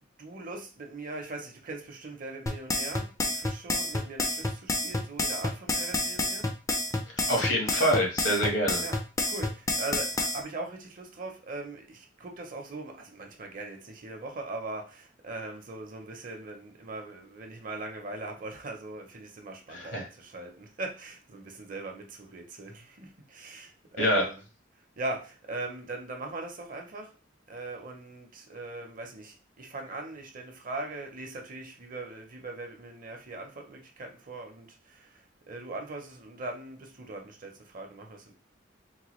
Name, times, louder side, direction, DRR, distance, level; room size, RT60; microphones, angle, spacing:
voice 1, 0.2-6.5 8.8-24.4 25.0-27.1 27.5-38.3, right 2 dB, 50° right, 3 dB, 0.7 m, -40 dB
sound 1, 2.5-10.4, left 2 dB, 15° left, 0.4 m, -29 dB
voice 2, 7.1-8.8 19.7-20.1 24.0-24.2, equal, 75° left, 0 dB, 1.3 m, -26 dB
3.9 x 2.2 x 3.1 m, 0.33 s
head